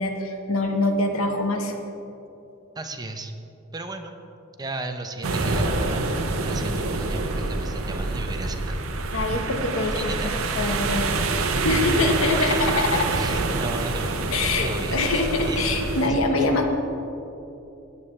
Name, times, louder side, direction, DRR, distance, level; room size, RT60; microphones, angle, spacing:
voice 1, 0.0-1.8 9.1-10.1 10.5-11.1 11.4-13.0 14.3-16.7, left 2 dB, 90° left, 4 dB, 1.2 m, -24 dB
voice 2, 2.8-3.3 3.7-4.1 4.6-6.0 6.4-8.8 9.9-10.3 12.0-14.3 14.6-15.7 16.0-16.1, right 2 dB, 20° right, 6 dB, 0.6 m, -34 dB
sound 1, 5.2-16.1, right 3 dB, 85° right, 0.8 m, -26 dB
17.0 x 8.5 x 3.3 m, 2.9 s
head